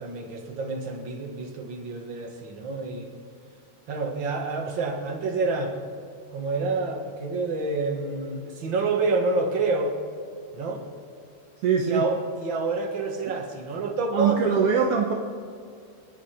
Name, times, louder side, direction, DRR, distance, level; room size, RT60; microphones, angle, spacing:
voice 1, 0.0-3.1 3.9-5.7 6.3-10.0 10.5-10.8 11.8-14.6, right 3 dB, 45° right, 2 dB, 2.1 m, -28 dB
voice 2, 11.6-12.0 14.1-15.1, right 6 dB, 65° right, 2 dB, 1.5 m, -22 dB
26.0 x 10.0 x 5.1 m, 2.4 s
omnidirectional pair, 3.9 m